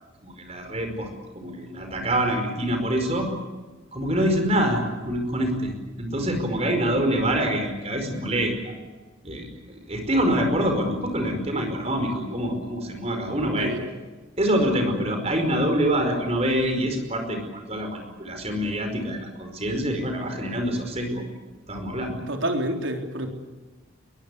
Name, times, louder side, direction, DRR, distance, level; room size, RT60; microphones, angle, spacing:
voice 1, 0.2-1.1 1.3-3.3 3.9-8.8 9.2-13.7 14.4-21.2 21.7-22.2, equal, 30° right, 5 dB, 5.1 m, -25 dB
voice 2, 22.3-23.3, right 1 dB, 70° right, 3 dB, 3.8 m, -28 dB
23.0 x 22.5 x 8.4 m, 1.2 s
head